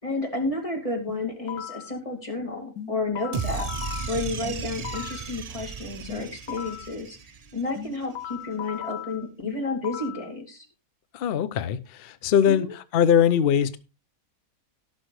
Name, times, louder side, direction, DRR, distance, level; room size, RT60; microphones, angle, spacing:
voice 1, 0.0-7.2 7.5-10.6 12.5-12.7, left 2 dB, 25° left, 2.5 m, -31 dB
sound 1, 1.1-1.9 2.8-5.3 6.1-6.9 7.8-10.3, left 10 dB, 85° left, 1.3 m, -38 dB
sound 2, 3.3-7.7, right 6 dB, 60° right, 0.4 m, -34 dB
voice 2, 11.1-13.8, left 8 dB, 50° left, 0.8 m, -22 dB
18.0 x 6.3 x 3.2 m
omnidirectional pair, 1.5 m